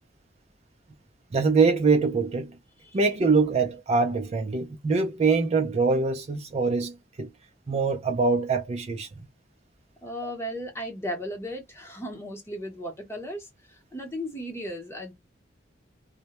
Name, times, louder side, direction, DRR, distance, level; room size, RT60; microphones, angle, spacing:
voice 1, 1.3-2.6 2.9-7.3 7.7-9.1, right 4 dB, 35° right, 0.3 m, -24 dB
voice 2, 10.0-15.1, equal, 15° left, 0.8 m, -36 dB
2.1 x 2.0 x 2.8 m
head